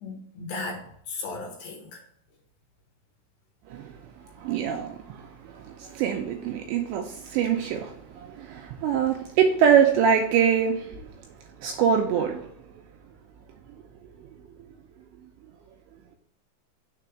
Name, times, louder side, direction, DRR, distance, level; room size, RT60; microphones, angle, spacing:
voice 1, 0.0-2.0, left 3 dB, 70° left, 2.8 m, -36 dB
voice 2, 4.4-11.0 11.6-12.5, right 7 dB, 85° right, 2.6 m, -24 dB
6.9 x 3.3 x 5.8 m
omnidirectional pair, 5.6 m